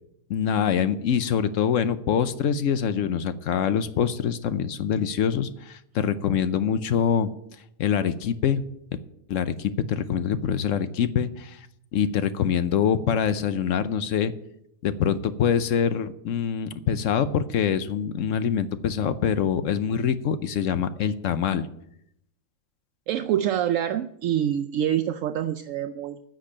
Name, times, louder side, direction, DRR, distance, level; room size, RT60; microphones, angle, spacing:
voice 1, 0.3-7.3 7.8-8.6 9.3-11.6 11.9-14.3 14.8-21.6, left 8 dB, 70° left, 12 dB, 1.0 m, -24 dB
voice 2, 23.1-26.2, right 10 dB, 75° right, 9 dB, 0.9 m, -26 dB
10.0 x 6.5 x 8.6 m, 0.76 s
omnidirectional pair, 1.4 m